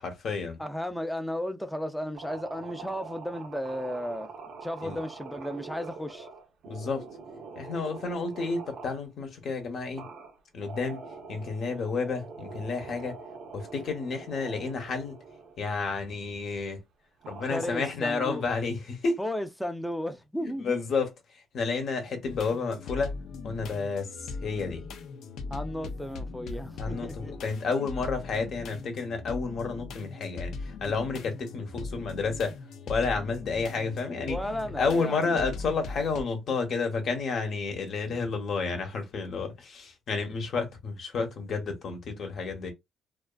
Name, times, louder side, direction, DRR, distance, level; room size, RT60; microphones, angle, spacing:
voice 1, 0.0-0.6 4.8-5.0 6.7-7.1 7.5-10.1 10.5-11.0 11.3-13.2 13.5-15.2 15.6-16.8 17.3-19.2 20.4-23.1 23.4-24.8 26.8-32.6 32.9-34.4 34.8-42.7, left 4 dB, 60° left, 0.8 m, -31 dB
voice 2, 0.6-4.3 4.6-6.3 17.5-18.4 19.2-20.7 25.5-27.3 34.3-35.5, equal, 5° left, 0.5 m, -34 dB
sound 1, 2.1-9.0 9.9-15.6 16.1-16.3 17.2-18.1, right 4 dB, 70° right, 0.6 m, -44 dB
sound 2, 22.2-36.2, left 4 dB, 80° left, 0.4 m, -40 dB
2.4 x 2.3 x 2.2 m
cardioid pair, 90°, 0 cm